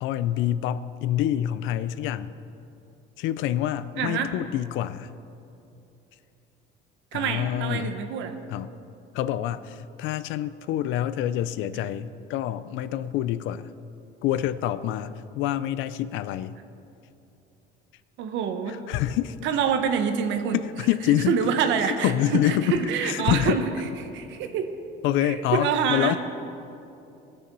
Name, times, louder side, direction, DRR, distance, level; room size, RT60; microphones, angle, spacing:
voice 1, 0.0-2.3 3.2-5.1 7.1-8.0 8.5-8.7 9.1-13.7 14.2-16.6 18.7-19.4 20.5-21.4 21.8-23.6 25.0-26.2, left 12 dB, 75° left, 15 dB, 0.5 m, -26 dB
voice 2, 4.0-4.3 7.1-8.4 18.2-18.8 19.4-20.6 21.3-23.6 24.1-24.7 25.2-26.2, right 7 dB, 70° right, 7 dB, 1.1 m, -26 dB
20.0 x 7.0 x 5.4 m, 2.8 s
cardioid pair, 165°, 20 cm